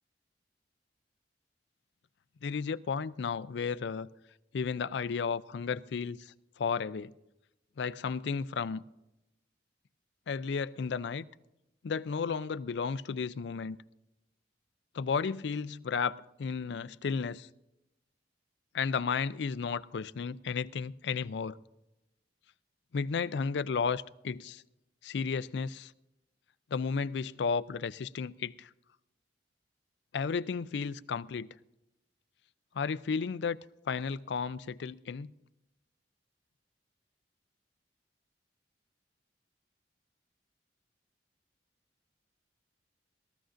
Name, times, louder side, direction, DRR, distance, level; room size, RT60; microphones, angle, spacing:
voice 1, 2.4-4.1 4.5-7.1 7.8-8.8 10.3-11.3 11.8-13.8 14.9-17.5 18.7-21.6 22.9-24.6 25.0-25.9 26.7-28.7 30.1-31.5 32.7-33.6 33.9-35.3, left 5 dB, 65° left, 0.4 m, -33 dB
21.0 x 14.0 x 2.5 m
head